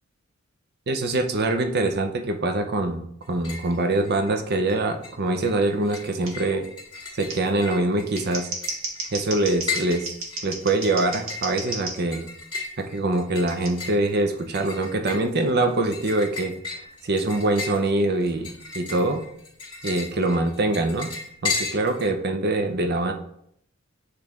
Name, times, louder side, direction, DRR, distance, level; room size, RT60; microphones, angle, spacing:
voice 1, 0.9-6.7 7.1-8.5 9.1-10.2 10.4-12.2 12.8-16.5 17.0-19.2 19.8-21.1 21.4-23.1, right 2 dB, 50° right, 6 dB, 0.6 m, -24 dB
sound 1, 3.2-3.7 4.0-4.7 5.0-22.1, left 4 dB, 25° left, 1.8 m, -35 dB
Scissors, 6.2-6.3 7.3-7.4 8.0-11.9 13.5-13.7, right 3 dB, 75° right, 1.4 m, -33 dB
8.1 x 3.3 x 3.5 m, 0.69 s
head